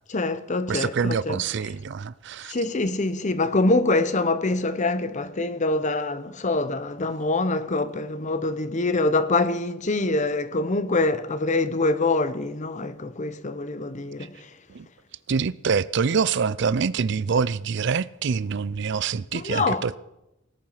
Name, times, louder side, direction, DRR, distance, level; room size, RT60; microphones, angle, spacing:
voice 1, 0.1-1.4 2.5-14.3 19.3-19.9, left 2 dB, 35° left, 0.8 m, -25 dB
voice 2, 0.7-2.5 14.7-14.9 15.3-20.0, right 5 dB, 60° right, 0.5 m, -25 dB
18.5 x 10.5 x 5.7 m
head